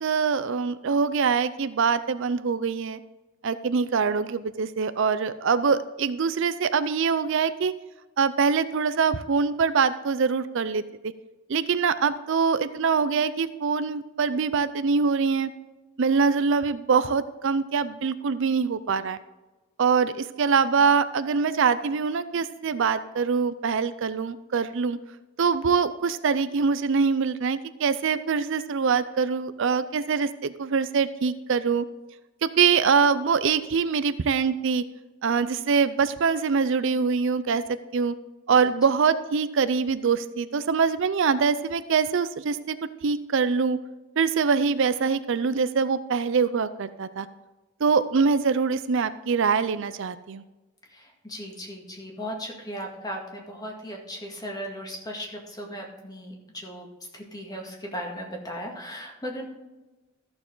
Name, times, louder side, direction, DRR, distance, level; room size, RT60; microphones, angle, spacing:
voice 1, 0.0-3.0 3.4-7.7 8.2-11.1 11.5-15.5 16.0-19.2 19.8-25.0 25.4-31.9 32.4-34.8 35.2-37.6 37.9-38.1 38.5-42.8 43.0-43.8 44.2-47.3 47.8-50.4, right 5 dB, 60° right, 13 dB, 0.5 m, -24 dB
voice 2, 50.9-56.9 57.1-59.5, equal, 20° left, 0 dB, 1.9 m, -37 dB
14.0 x 6.9 x 3.9 m, 1.1 s
head